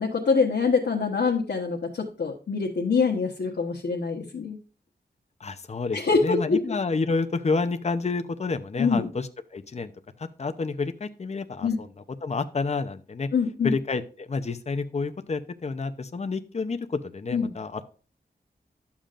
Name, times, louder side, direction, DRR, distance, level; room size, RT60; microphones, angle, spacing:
voice 1, 0.0-4.6 5.9-6.6 8.8-9.1 11.6-11.8 13.3-13.7 17.3-17.5, left 5 dB, 90° left, -1 dB, 1.2 m, -24 dB
voice 2, 5.4-9.9 10.2-11.9 12.2-13.3 13.6-17.8, left 4 dB, 40° left, 9 dB, 0.7 m, -29 dB
11.5 x 7.2 x 2.5 m, 0.37 s
wide cardioid pair, 105°, 17 cm